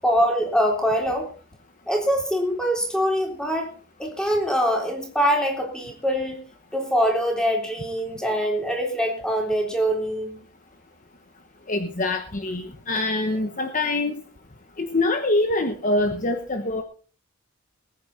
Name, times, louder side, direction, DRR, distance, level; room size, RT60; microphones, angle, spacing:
voice 1, 0.0-1.3 1.9-3.7 4.0-6.4 6.7-10.4, equal, 5° left, 1 dB, 3.7 m, -23 dB
voice 2, 11.7-14.2 14.8-16.8, left 2 dB, 35° left, 7 dB, 1.1 m, -24 dB
20.5 x 9.5 x 4.2 m, 0.38 s
head